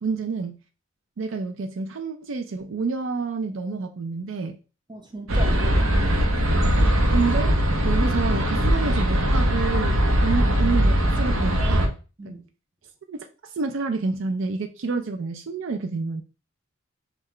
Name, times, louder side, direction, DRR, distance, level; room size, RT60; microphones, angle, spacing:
voice 1, 0.0-0.6 1.2-4.6 6.9-7.6 7.8-12.0 12.2-12.4 13.1-16.2, right 4 dB, 65° right, 0.4 m, -29 dB
voice 2, 4.9-6.5 12.2-12.4, right 1 dB, 20° right, 0.8 m, -38 dB
sound 1, 5.3-11.9, equal, 90° right, 0.8 m, -20 dB
5.6 x 2.3 x 3.2 m
head